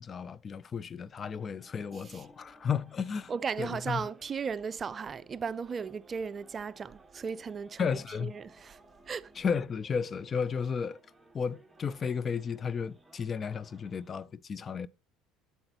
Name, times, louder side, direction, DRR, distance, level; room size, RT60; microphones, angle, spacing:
voice 1, 0.0-3.3 3.6-4.0 7.8-8.3 9.4-11.0 11.3-14.9, left 6 dB, 35° left, 0.4 m, -33 dB
sound 1, 1.4-14.3, right 2 dB, 10° right, 1.1 m, -60 dB
voice 2, 3.3-8.8 9.1-9.3, right 6 dB, 35° right, 0.4 m, -36 dB
8.7 x 6.8 x 2.9 m
hypercardioid pair, 80°, 0 cm